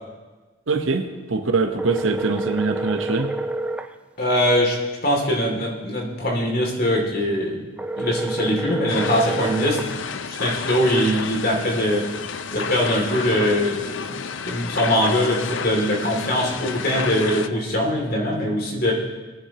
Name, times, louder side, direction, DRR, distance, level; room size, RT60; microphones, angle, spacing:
voice 1, 0.7-3.3, right 4 dB, 70° right, 6 dB, 1.0 m, -23 dB
sound 1, 1.8-3.9 7.8-9.9, right 2 dB, 5° right, 0.4 m, -28 dB
voice 2, 4.2-4.8 5.0-7.6 8.0-9.8 10.3-12.0 12.5-14.2 14.4-18.9, equal, 45° left, -1 dB, 2.6 m, -22 dB
sound 2, 8.9-17.5, left 6 dB, 60° left, 0.5 m, -31 dB
22.0 x 9.9 x 3.0 m, 1.3 s
head